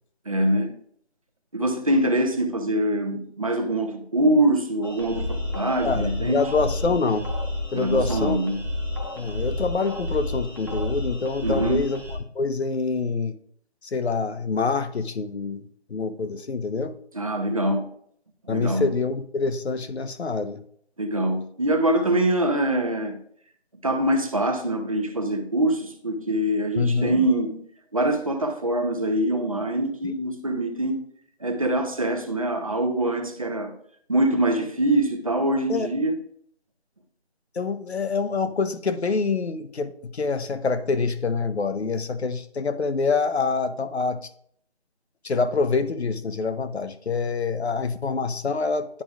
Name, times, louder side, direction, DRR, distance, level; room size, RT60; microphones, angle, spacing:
voice 1, 0.3-0.7 1.5-6.5 7.7-8.6 11.4-11.9 17.1-17.9 18.5-18.9 21.0-23.2 23.8-27.6 27.9-31.0 31.4-33.7 34.1-36.1, right 1 dB, 30° right, 6 dB, 0.7 m, -24 dB
sound 1, 4.8-12.2, left 1 dB, 20° left, 0.9 m, -30 dB
voice 2, 5.8-7.3 7.7-8.4 9.2-12.0 12.3-13.3 13.8-17.0 18.5-20.6 26.8-27.2 30.0-30.1 35.7-35.9 37.5-44.2 45.2-49.0, left 4 dB, 75° left, 10 dB, 0.9 m, -26 dB
11.0 x 4.8 x 2.4 m, 0.65 s
figure-of-eight pair, 170°, 33 cm